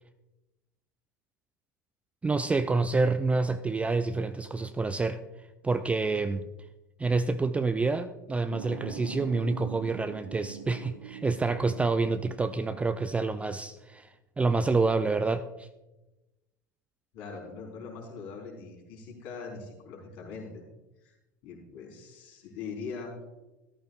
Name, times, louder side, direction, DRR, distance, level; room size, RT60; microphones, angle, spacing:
voice 1, 2.2-5.2 5.6-6.5 7.0-14.1 14.4-15.7, right 3 dB, 10° right, 11 dB, 0.4 m, -28 dB
sound 1, 8.5-13.5, right 7 dB, 70° right, 0.9 m, -44 dB
voice 2, 17.1-20.6 21.0-21.2 21.4-23.2, left 4 dB, 50° left, -1 dB, 4.1 m, -41 dB
13.5 x 13.5 x 2.4 m, 1.0 s
figure-of-eight pair, 80°, 11 cm